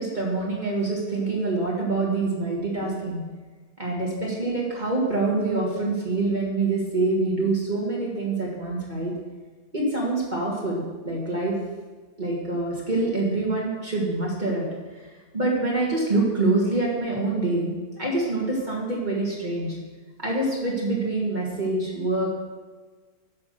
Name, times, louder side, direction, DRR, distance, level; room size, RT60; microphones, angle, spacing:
voice 1, 0.0-3.2 3.8-9.1 9.7-11.6 12.2-14.7 15.3-17.7 18.0-19.8 20.2-22.3, right 2 dB, 25° right, -4 dB, 2.0 m, -25 dB
11.0 x 6.1 x 6.8 m, 1.3 s
omnidirectional pair, 1.9 m